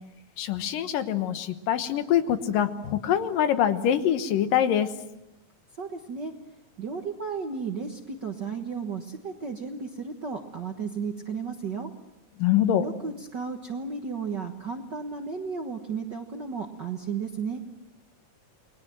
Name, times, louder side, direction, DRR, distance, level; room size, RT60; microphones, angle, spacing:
voice 1, 0.4-4.9 12.4-12.8, left 10 dB, 80° left, 10 dB, 2.9 m, -24 dB
voice 2, 5.8-6.3 6.8-11.9 12.8-17.6, right 5 dB, 50° right, 4 dB, 1.3 m, -34 dB
29.0 x 21.0 x 7.6 m, 0.90 s
omnidirectional pair, 3.9 m